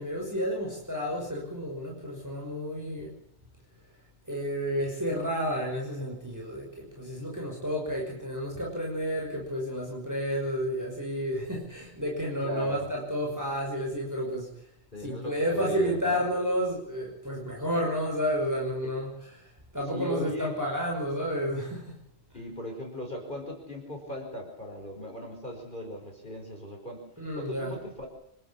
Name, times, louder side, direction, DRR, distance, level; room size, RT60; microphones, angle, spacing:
voice 1, 0.0-3.2 4.3-14.5 15.0-22.0 27.2-27.7, equal, 15° right, -1 dB, 5.9 m, -31 dB
voice 2, 12.4-12.9 14.9-16.2 18.8-18.9 19.9-20.6 22.3-27.0 27.3-28.1, left 1 dB, 45° left, 1 dB, 5.7 m, -38 dB
26.0 x 12.5 x 8.6 m, 0.77 s
omnidirectional pair, 1.2 m